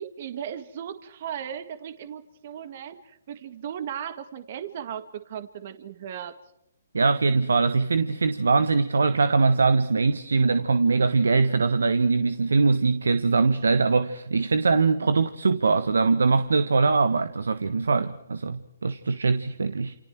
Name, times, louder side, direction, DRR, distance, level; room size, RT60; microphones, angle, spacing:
voice 1, 0.0-6.4, right 9 dB, 50° right, 1.7 m, -36 dB
voice 2, 6.9-19.9, right 4 dB, 85° right, 1.4 m, -22 dB
29.0 x 28.5 x 4.6 m
hypercardioid pair, 145°, 0 cm